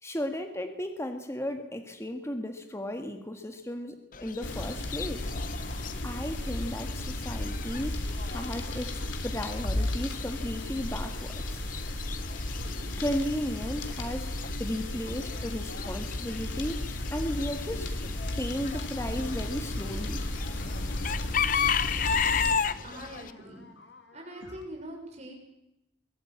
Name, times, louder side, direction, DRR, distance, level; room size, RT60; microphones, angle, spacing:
voice 1, 0.0-5.3 6.0-11.6 13.0-17.9 18.4-20.2, left 1 dB, 15° left, 6 dB, 1.7 m, -35 dB
Chicken rooster / Bird, 4.1-23.3, left 6 dB, 45° left, 0.8 m, -35 dB
sound 1, 4.4-22.5, left 1 dB, 90° left, 3.2 m, -34 dB
sound 2, 19.0-24.7, left 2 dB, 70° left, 2.5 m, -49 dB
voice 2, 22.8-23.6 24.1-25.3, right 1 dB, 35° right, 1 dB, 6.3 m, -43 dB
22.5 x 18.0 x 8.7 m, 0.88 s
head